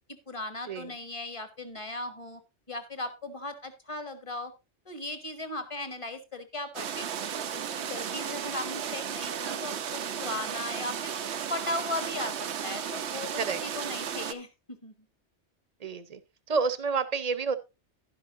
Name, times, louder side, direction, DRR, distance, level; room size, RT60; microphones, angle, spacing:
voice 1, 0.3-2.4 2.7-4.5 4.8-11.1 11.5-14.9, left 2 dB, 30° left, 10 dB, 1.5 m, -37 dB
sound 1, 6.7-14.3, right 8 dB, 75° right, 1.0 m, -34 dB
voice 2, 15.8-16.2 16.5-17.5, right 5 dB, 35° right, 13 dB, 0.9 m, -29 dB
11.5 x 11.0 x 2.6 m, 0.24 s
omnidirectional pair, 1.2 m